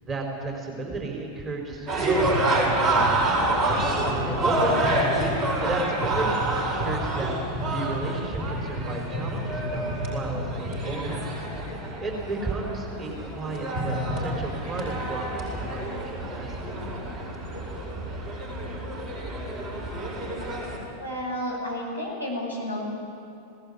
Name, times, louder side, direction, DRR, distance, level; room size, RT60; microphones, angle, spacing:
voice 1, 0.0-2.3 2.5-3.6 4.2-5.2 5.6-7.3 7.6-11.2 12.0-16.7, right 3 dB, 25° right, 1 dB, 4.3 m, -33 dB
sound 1, 1.9-20.8, right 1 dB, 45° right, 8.0 m, -27 dB
voice 2, 20.9-22.8, equal, 85° right, -3 dB, 7.0 m, -31 dB
20.0 x 18.0 x 9.8 m, 2.6 s
figure-of-eight pair, 90°, 0 cm